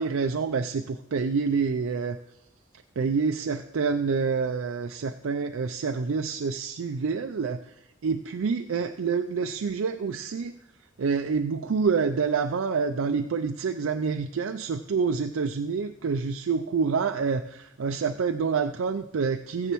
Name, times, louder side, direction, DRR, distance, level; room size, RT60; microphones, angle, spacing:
voice 1, 0.0-2.2 3.0-7.6 8.0-10.5 11.0-19.7, right 5 dB, 75° right, 6 dB, 0.4 m, -27 dB
15.0 x 10.0 x 3.0 m, 0.84 s
head